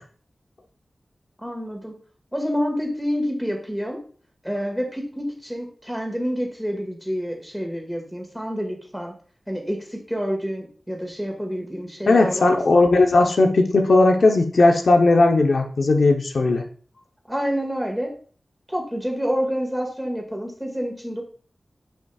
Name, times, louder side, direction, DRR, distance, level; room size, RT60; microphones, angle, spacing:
voice 1, 1.4-1.9 2.3-4.0 4.4-9.1 9.5-12.6 17.3-18.1 18.7-21.2, equal, ahead, 1 dB, 2.0 m, -28 dB
voice 2, 12.1-16.6, left 2 dB, 80° left, 3 dB, 0.8 m, -17 dB
10.0 x 5.5 x 2.4 m, 0.44 s
wide cardioid pair, 90°, 0 cm